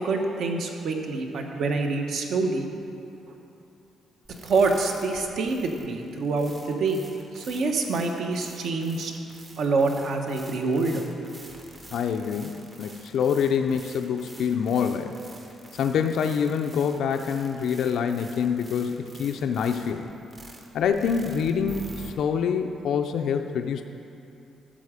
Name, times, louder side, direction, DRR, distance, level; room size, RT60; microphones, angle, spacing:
voice 1, 0.0-2.7 3.3-3.4 4.4-7.0 7.3-9.1 9.6-11.0, right 3 dB, 55° right, 3 dB, 1.0 m, -26 dB
sound 1, 4.2-22.1, right 2 dB, 25° right, 0.9 m, -47 dB
voice 2, 11.9-15.1 15.7-20.1 20.7-23.8, left 7 dB, 60° left, 6 dB, 0.4 m, -26 dB
12.5 x 7.4 x 5.0 m, 2.7 s
cardioid pair, 175°, 0 cm